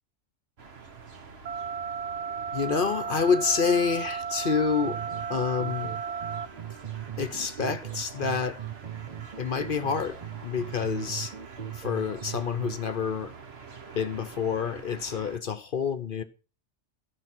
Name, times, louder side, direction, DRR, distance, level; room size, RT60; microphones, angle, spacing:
sound 1, 0.6-15.4, right 5 dB, 55° right, 1.6 m, -47 dB
sound 2, 1.5-6.5, right 6 dB, 75° right, 1.2 m, -34 dB
voice 1, 2.5-5.0 5.3-6.0 7.2-8.6 9.4-11.3 11.7-13.3 13.9-16.2, left 6 dB, 50° left, 0.9 m, -28 dB
sound 3, 4.8-12.8, right 10 dB, 40° right, 0.8 m, -39 dB
13.5 x 6.6 x 6.0 m
omnidirectional pair, 1.2 m